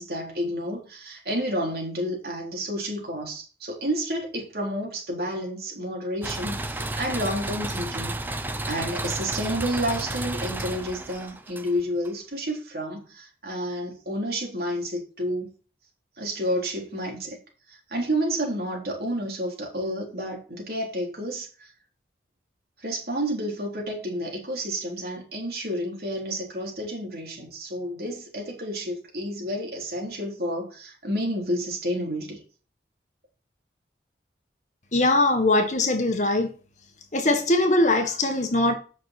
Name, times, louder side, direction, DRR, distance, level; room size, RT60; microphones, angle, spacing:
voice 1, 0.0-8.1 8.7-15.5 16.2-17.4 17.7-21.7 22.8-32.4, equal, 60° right, 3.7 m, -30 dB
sound 1, 6.2-12.1, right 2 dB, 10° right, 0.7 m, -32 dB
voice 2, 34.9-36.5 37.1-38.7, left 2 dB, 45° left, 1.6 m, -21 dB
9.0 x 6.4 x 4.4 m
head